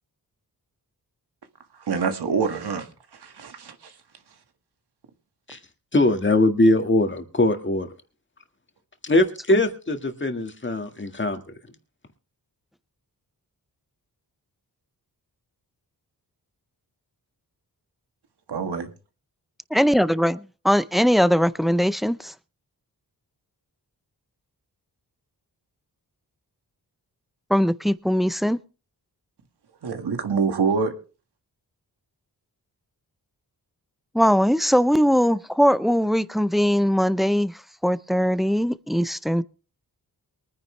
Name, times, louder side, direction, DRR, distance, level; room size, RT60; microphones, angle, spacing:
voice 1, 1.7-2.9 3.1-3.9 18.5-18.9 29.8-30.9, right 5 dB, 85° right, 1.9 m, -26 dB
voice 2, 5.9-7.9 9.0-11.4, left 2 dB, 30° left, 1.8 m, -21 dB
voice 3, 19.7-22.3 27.5-28.6 34.1-37.5 37.8-39.4, equal, ahead, 0.5 m, -20 dB
23.0 x 9.7 x 3.3 m
wide cardioid pair, 100°, 38 cm